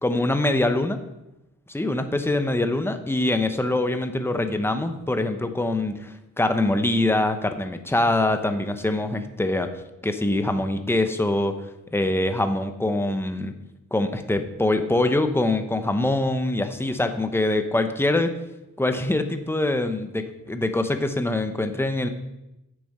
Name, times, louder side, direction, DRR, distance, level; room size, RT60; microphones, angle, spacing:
voice 1, 0.0-1.0 1.7-9.7 10.0-13.5 13.9-18.4 18.8-22.1, left 2 dB, 5° left, 8 dB, 0.9 m, -24 dB
8.5 x 6.9 x 5.6 m, 0.92 s
cardioid pair, 65°, 33 cm